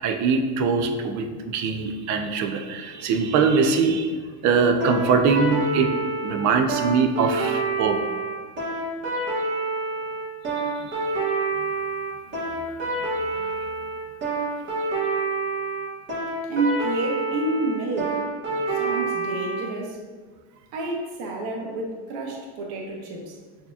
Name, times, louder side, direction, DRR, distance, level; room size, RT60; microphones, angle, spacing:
voice 1, 0.0-5.9 6.2-8.0 10.8-11.0, right 5 dB, 45° right, 6 dB, 0.5 m, -22 dB
sound 1, 4.8-19.6, right 3 dB, 30° right, 1.3 m, -27 dB
voice 2, 16.5-18.3 18.7-20.0 20.7-23.4, right 2 dB, 65° right, -1 dB, 1.0 m, -29 dB
6.5 x 2.8 x 2.3 m, 1.4 s
cardioid pair, 135°, 41 cm